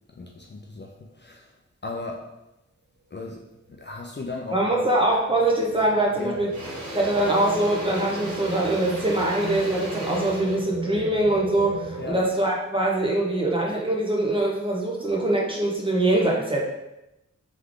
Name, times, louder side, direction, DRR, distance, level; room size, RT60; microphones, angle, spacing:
voice 1, 0.1-1.5 1.8-2.2 3.1-3.4 3.8-4.9 6.2-6.4 12.0-12.2, left 3 dB, 35° left, 0 dB, 0.5 m, -36 dB
sound 1, 3.6-12.1, right 4 dB, 50° right, 0.5 m, -38 dB
voice 2, 4.5-6.5 6.9-16.6, right 1 dB, 15° right, -3 dB, 0.9 m, -23 dB
Engine / Drill, 5.6-5.8 6.1-12.3, equal, 70° right, 1.1 m, -36 dB
3.5 x 3.3 x 3.7 m, 0.93 s
wide cardioid pair, 75°, 30 cm